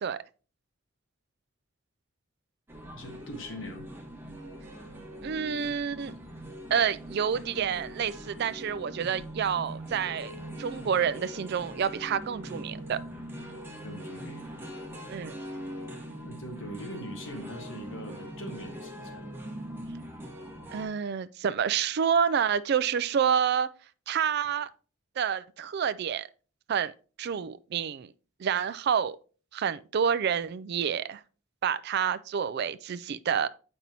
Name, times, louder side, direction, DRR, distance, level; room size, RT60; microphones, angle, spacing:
sound 1, 2.7-20.9, equal, 10° right, 1.2 m, -42 dB
voice 1, 2.9-3.9 13.8-14.5 16.2-19.2, equal, 65° left, 1.3 m, -41 dB
voice 2, 5.2-6.1 6.7-10.3 10.6-13.0 15.1-15.4 20.7-23.7 24.1-24.7 25.2-26.3 26.7-26.9 27.2-28.1 28.4-29.2 29.5-31.2 31.6-33.5, right 7 dB, 55° right, 0.3 m, -28 dB
7.4 x 5.4 x 2.8 m
head